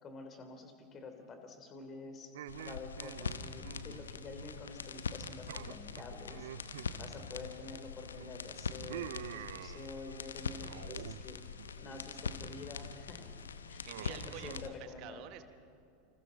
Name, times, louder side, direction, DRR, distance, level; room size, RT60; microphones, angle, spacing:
voice 1, 0.0-2.3 2.6-6.5 7.0-11.4 11.8-13.3 13.7-15.2, left 3 dB, 30° left, 6 dB, 3.4 m, -48 dB
sound 1, 2.3-4.8 5.0-5.2 5.5-7.8 8.2-10.2 10.6-11.2 11.5-12.0 12.5-12.9 13.9-14.6, right 13 dB, 65° right, 0.4 m, -48 dB
sound 2, 2.5-14.7, left 6 dB, 75° left, 0.9 m, -43 dB
voice 2, 13.8-15.4, right 12 dB, 50° right, 10 dB, 1.1 m, -49 dB
28.5 x 27.0 x 4.1 m, 2.6 s
figure-of-eight pair, 85°, 0 cm